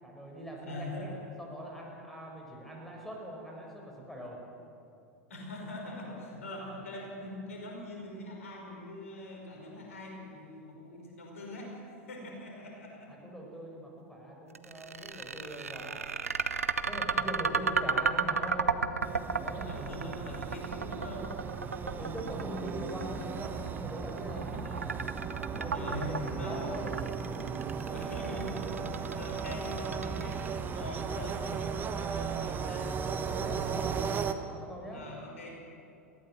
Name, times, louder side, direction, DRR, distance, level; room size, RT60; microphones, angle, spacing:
voice 1, 0.0-1.1 1.4-4.4 6.0-6.3 13.1-16.0 16.9-18.9 19.3-19.8 21.8-24.6 25.6-26.9 27.3-27.4 33.3-34.0 34.6-35.0, equal, 5° left, -1 dB, 5.8 m, -42 dB
voice 2, 0.6-1.3 5.3-11.8 12.1-13.2 16.9-17.8 19.6-21.4 24.4-24.9 25.5-26.7 27.9-33.0 34.9-35.5, left 1 dB, 70° left, 0 dB, 5.3 m, -43 dB
sound 1, 14.5-30.7, right 5 dB, 80° right, 0.8 m, -33 dB
sound 2, 19.0-34.3, right 6 dB, 25° right, 1.4 m, -36 dB
22.5 x 16.0 x 7.9 m, 2.8 s
figure-of-eight pair, 85°, 8 cm